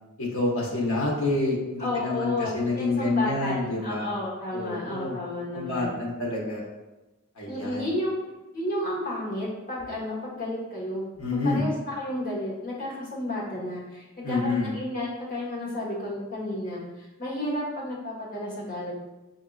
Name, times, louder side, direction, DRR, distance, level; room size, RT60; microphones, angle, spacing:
voice 1, 0.2-4.1 4.5-5.2 5.5-6.6 7.4-7.9 11.2-11.6 14.2-14.7, left 2 dB, 85° left, -4 dB, 1.1 m, -28 dB
voice 2, 1.8-6.0 7.5-8.1 8.5-11.0 11.3-18.9, left 1 dB, 40° left, -6 dB, 1.3 m, -32 dB
5.9 x 2.7 x 2.3 m, 1.1 s
head